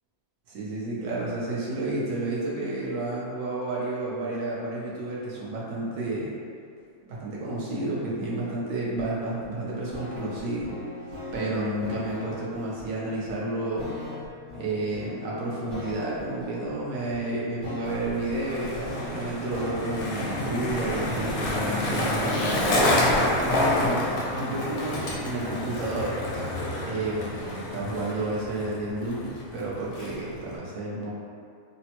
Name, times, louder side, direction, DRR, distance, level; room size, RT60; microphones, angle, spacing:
voice 1, 0.5-6.3 7.1-10.8 11.0-13.9 14.5-22.9 23.4-24.0 24.3-26.1 26.8-31.1, right 2 dB, 70° right, -6 dB, 1.0 m, -31 dB
sound 1, 9.0-24.3, left 2 dB, 40° right, 0.8 m, -40 dB
Skateboard, 17.8-30.6, left 1 dB, 75° left, 1.0 m, -29 dB
3.3 x 2.0 x 2.8 m, 2.4 s
omnidirectional pair, 1.5 m